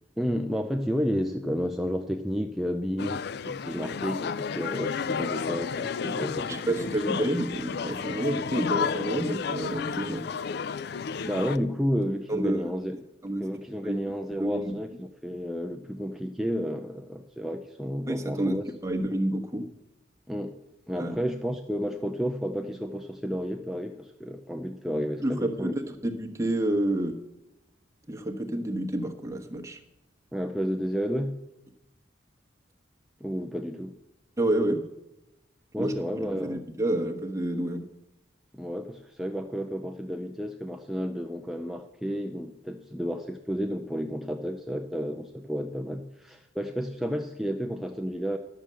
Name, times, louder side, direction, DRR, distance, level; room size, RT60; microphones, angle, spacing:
voice 1, 0.2-7.1 10.8-12.9 13.4-18.6 20.3-20.6 20.9-25.8 30.3-31.4 33.2-34.0 35.7-36.6 38.5-48.4, equal, ahead, 3 dB, 0.5 m, -31 dB
sound 1, 3.0-11.6, left 6 dB, 60° left, 0.4 m, -32 dB
voice 2, 6.5-10.2 12.3-12.7 13.2-13.4 13.8-14.0 14.4-14.7 18.1-18.6 18.8-19.6 21.0-21.1 25.2-27.2 28.1-29.8 34.4-34.8 35.8-35.9 36.3-37.8, right 1 dB, 15° right, 3 dB, 1.2 m, -29 dB
11.5 x 6.8 x 7.6 m, 0.91 s
head